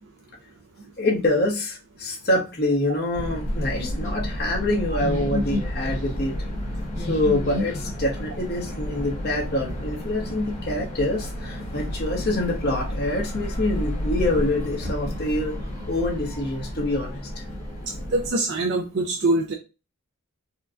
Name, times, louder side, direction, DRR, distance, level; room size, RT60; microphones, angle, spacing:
voice 1, 1.0-6.3 7.1-15.6 15.9-17.2, left 1 dB, 50° left, -1 dB, 1.1 m, -26 dB
sound 1, 3.1-18.3, left 1 dB, 30° left, 1.5 m, -30 dB
voice 2, 18.1-19.5, right 2 dB, 55° right, 2 dB, 0.5 m, -23 dB
4.3 x 2.2 x 2.5 m, 0.29 s
head